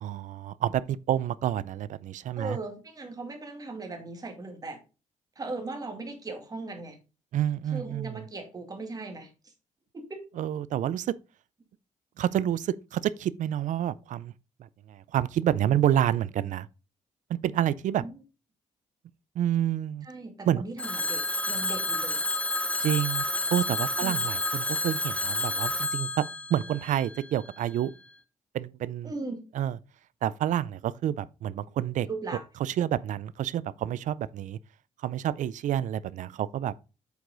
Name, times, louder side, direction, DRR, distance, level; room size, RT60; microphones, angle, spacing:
voice 1, 0.0-2.6 7.3-8.2 10.4-11.1 12.2-14.3 14.9-16.7 17.3-18.0 19.4-20.1 20.5-20.6 22.8-23.2 23.5-26.2 26.5-27.9 28.5-29.1 29.5-29.8 30.2-32.1 32.6-34.6 35.0-36.7, right 11 dB, 75° right, 0.4 m, -28 dB
voice 2, 2.3-4.8 5.4-7.0 7.7-9.5 9.9-10.2 18.0-18.2 20.0-22.2 24.0-24.2 29.0-29.4 32.1-32.4, right 3 dB, 30° right, 2.2 m, -38 dB
Telephone, 20.8-27.6, left 2 dB, 10° left, 1.0 m, -30 dB
8.1 x 4.9 x 3.8 m
cardioid pair, 120°, 13 cm